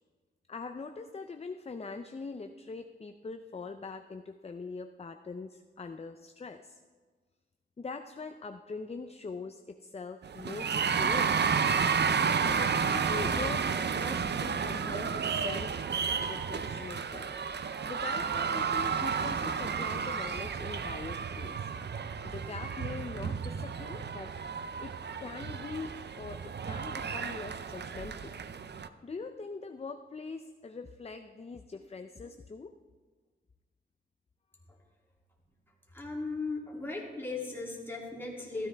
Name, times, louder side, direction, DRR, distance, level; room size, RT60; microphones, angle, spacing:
voice 1, 0.5-6.8 7.8-11.5 12.4-15.7 16.1-17.4 17.9-21.7 22.2-24.3 24.8-24.9 25.2-28.4 29.0-32.7, left 4 dB, 30° left, 7 dB, 0.5 m, -42 dB
sound 1, 10.2-28.9, right 6 dB, 60° right, 0.5 m, -32 dB
voice 2, 35.9-38.7, left 3 dB, 10° left, -4 dB, 2.9 m, -37 dB
14.5 x 13.0 x 3.4 m, 1.4 s
wide cardioid pair, 85°, 20 cm